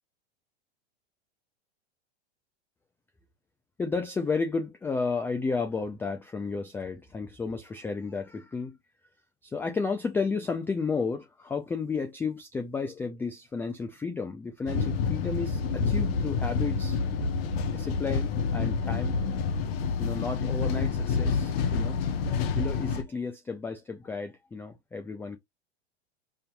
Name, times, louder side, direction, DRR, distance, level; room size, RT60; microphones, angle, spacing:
voice 1, 3.8-8.8 9.4-17.0 17.7-19.2 20.0-22.0 22.5-25.4, left 4 dB, 5° left, 0.3 m, -32 dB
sound 1, 14.7-23.0, left 5 dB, 65° left, 1.0 m, -28 dB
5.3 x 2.7 x 2.2 m
hypercardioid pair, 110°, 33 cm